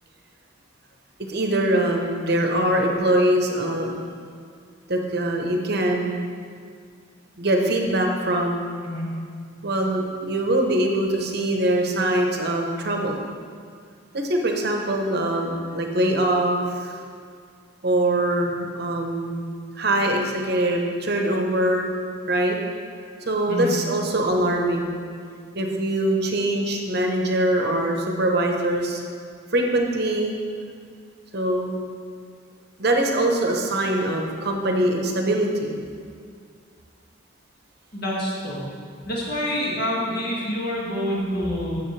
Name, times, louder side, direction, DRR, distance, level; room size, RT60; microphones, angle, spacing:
voice 1, 1.3-4.0 4.9-6.2 7.4-8.7 9.6-13.2 14.1-17.0 17.8-19.4 19.8-22.0 22.3-22.6 23.2-25.0 25.5-29.0 29.5-30.3 31.3-31.8 32.8-35.7, right 1 dB, 50° right, 2 dB, 1.0 m, -23 dB
voice 2, 37.9-38.6 39.1-41.8, equal, 50° left, -5 dB, 2.1 m, -27 dB
14.5 x 6.4 x 3.3 m, 2.1 s
head